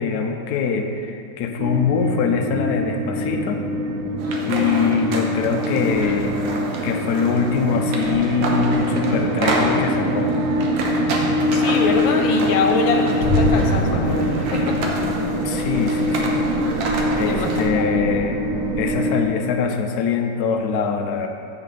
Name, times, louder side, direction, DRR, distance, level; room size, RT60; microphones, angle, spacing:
voice 1, 0.0-3.7 4.5-6.4 6.8-10.3 15.4-16.4 17.1-18.4 18.8-21.3, left 6 dB, 70° left, 4 dB, 1.0 m, -23 dB
sound 1, 1.6-19.2, equal, 60° right, 0.9 m, -24 dB
sound 2, 4.2-17.7, right 2 dB, 80° right, 1.6 m, -29 dB
voice 2, 11.5-14.8 17.2-17.9, left 3 dB, 90° left, 3 dB, 1.6 m, -23 dB
sound 3, 13.2-18.9, left 1 dB, 45° left, 0.6 m, -27 dB
7.4 x 7.3 x 4.0 m, 2.4 s
omnidirectional pair, 2.0 m